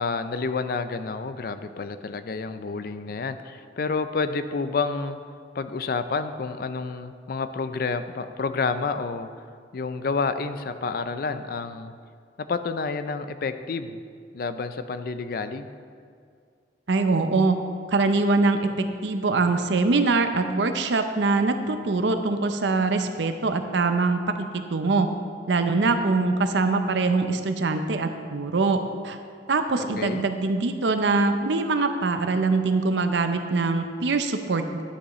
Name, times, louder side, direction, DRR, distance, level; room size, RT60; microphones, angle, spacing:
voice 1, 0.0-5.2 5.5-9.3 9.7-11.9 12.4-14.0 14.3-15.7 29.8-30.2, left 4 dB, 55° left, 10 dB, 0.4 m, -29 dB
voice 2, 16.9-17.6 17.9-25.1 25.5-29.2 29.5-34.8, right 3 dB, 80° right, 8 dB, 0.6 m, -23 dB
11.5 x 8.1 x 3.1 m, 2.2 s
head